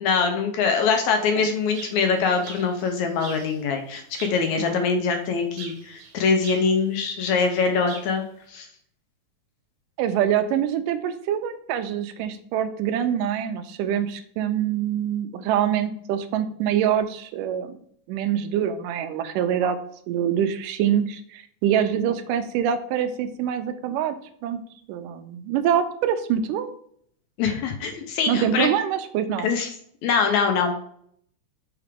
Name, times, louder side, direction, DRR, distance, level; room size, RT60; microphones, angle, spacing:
voice 1, 0.0-8.2 8.5-8.7 27.4-28.7 29.4-29.7 30.0-30.7, left 5 dB, 75° left, 5 dB, 1.8 m, -23 dB
sound 1, 0.8-3.6 4.2-4.6 5.6-6.9 7.5-8.2, right 4 dB, 70° right, 2.5 m, -42 dB
voice 2, 10.0-17.8 18.1-19.8 20.1-24.2 24.4-24.6 24.9-26.7 28.3-29.5, right 9 dB, 85° right, 9 dB, 2.2 m, -25 dB
5.6 x 4.9 x 3.5 m, 0.65 s
omnidirectional pair, 3.7 m